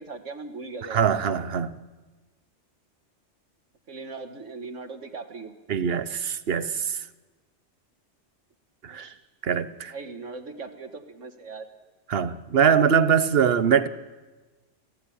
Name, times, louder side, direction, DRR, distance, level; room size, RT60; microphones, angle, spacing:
voice 1, 0.0-1.2 3.9-5.6 8.9-9.2 9.9-11.7, right 4 dB, 90° right, 7 dB, 2.1 m, -39 dB
voice 2, 0.9-1.7 5.7-7.0 8.8-9.1 9.4-9.9 12.1-13.9, right 7 dB, 55° right, 14 dB, 1.1 m, -22 dB
26.5 x 16.5 x 8.8 m, 1.3 s
omnidirectional pair, 1.2 m